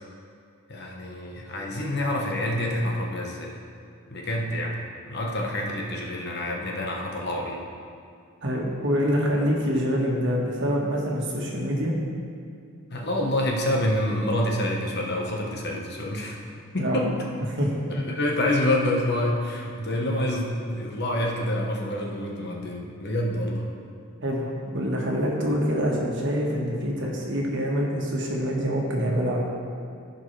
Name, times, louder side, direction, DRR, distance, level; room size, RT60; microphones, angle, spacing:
voice 1, 0.7-3.5 4.1-4.8 5.1-7.6 12.9-16.4 16.7-17.1 17.9-23.7, left 1 dB, 50° left, -1 dB, 1.1 m, -27 dB
voice 2, 8.4-11.9 16.8-17.0 17.5-17.7 24.2-29.4, equal, 55° right, -2 dB, 1.4 m, -25 dB
15.0 x 5.4 x 3.3 m, 2.2 s
head